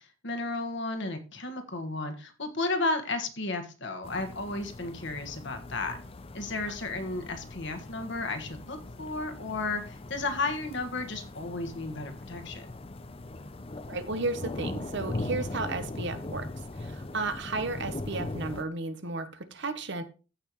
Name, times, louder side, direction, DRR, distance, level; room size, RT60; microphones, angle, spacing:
voice 1, 0.0-6.0 6.3-12.7, left 2 dB, 55° left, 1.5 m, -33 dB
sound 1, 4.0-18.6, left 2 dB, 25° left, 0.5 m, -40 dB
voice 2, 13.9-16.5 16.8-20.0, right 3 dB, 55° right, 1.0 m, -33 dB
15.0 x 5.7 x 3.1 m
head